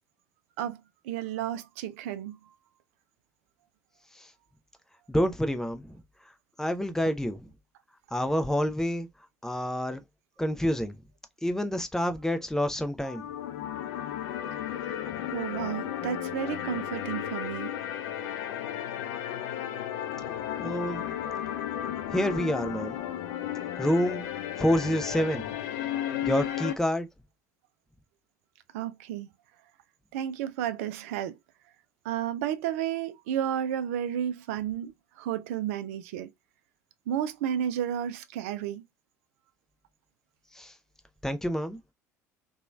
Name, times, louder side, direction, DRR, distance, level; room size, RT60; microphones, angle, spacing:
voice 1, 0.6-2.4 14.5-15.0 15.3-17.8 28.7-29.3 30.1-31.4 32.0-36.3 37.1-38.8, right 10 dB, 65° right, 0.4 m, -32 dB
voice 2, 5.1-6.0 6.6-7.5 8.1-9.1 9.4-10.0 10.4-11.0 11.4-13.3 20.6-21.1 22.1-23.0 23.8-24.3 24.6-25.6 26.2-27.1 40.5-40.7 41.2-41.8, equal, 5° left, 0.5 m, -28 dB
sound 1, 13.0-26.7, left 11 dB, 60° left, 0.5 m, -34 dB
2.9 x 2.2 x 2.3 m
figure-of-eight pair, 60°, 8 cm